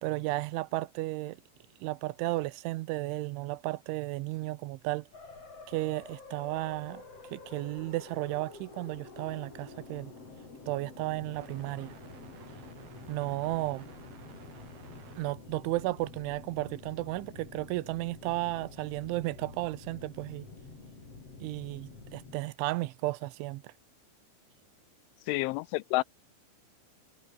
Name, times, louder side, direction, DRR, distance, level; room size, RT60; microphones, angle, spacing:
voice 1, 0.0-1.4 1.8-5.1 5.7-7.0 7.3-10.1 10.7-12.0 13.1-13.9 15.2-20.5 21.4-23.7, right 19 dB, 85° right, 3.1 m, -34 dB
sound 1, 5.1-22.4, left 3 dB, 30° left, 6.4 m, -49 dB
sound 2, 8.9-15.6, right 6 dB, 55° right, 6.4 m, -55 dB
voice 2, 25.3-26.0, left 21 dB, 85° left, 3.0 m, -29 dB
omnidirectional pair, 5.5 m